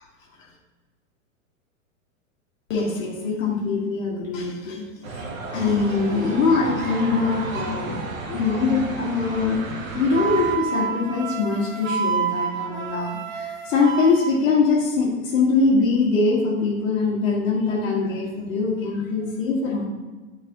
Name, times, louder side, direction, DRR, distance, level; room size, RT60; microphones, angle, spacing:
voice 1, 2.7-4.9 5.5-9.6 9.9-19.8, left 4 dB, 70° left, -4 dB, 1.6 m, -23 dB
sound 1, 5.0-10.6, right 3 dB, 80° right, 1.4 m, -32 dB
Wind instrument woodwind instrument, 10.1-14.3, right 7 dB, 30° right, 0.8 m, -28 dB
8.4 x 4.7 x 2.8 m, 1.3 s
hypercardioid pair, 110°, 40 cm